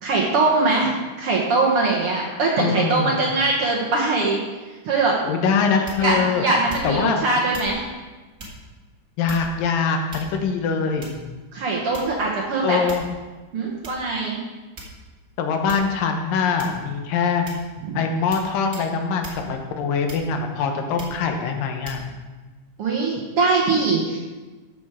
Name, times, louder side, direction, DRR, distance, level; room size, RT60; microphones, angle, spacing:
voice 1, 0.0-4.4 4.7-5.2 6.0-7.8 11.5-12.8 13.5-14.4 17.8-18.0 22.8-24.2, right 3 dB, 60° right, -3 dB, 1.6 m, -22 dB
voice 2, 2.6-3.2 5.2-6.4 6.8-7.2 9.2-11.1 12.6-13.1 15.4-17.5 17.9-22.1, left 5 dB, 90° left, 4 dB, 2.8 m, -23 dB
sound 1, 5.8-6.2 6.7-7.1 7.5-7.8 8.4-8.6 9.3-9.6 10.1-10.5 11.0-11.3 11.9-12.3 12.9-13.2 13.8-14.0 14.8-15.2 15.7-15.9 16.6-16.9 17.5-17.7 18.3-18.5 18.7-18.9 19.2-19.4 20.1-20.5 21.0-21.2 21.8-22.0, right 1 dB, 35° right, 1.5 m, -38 dB
13.0 x 6.1 x 4.9 m, 1.3 s
omnidirectional pair, 3.8 m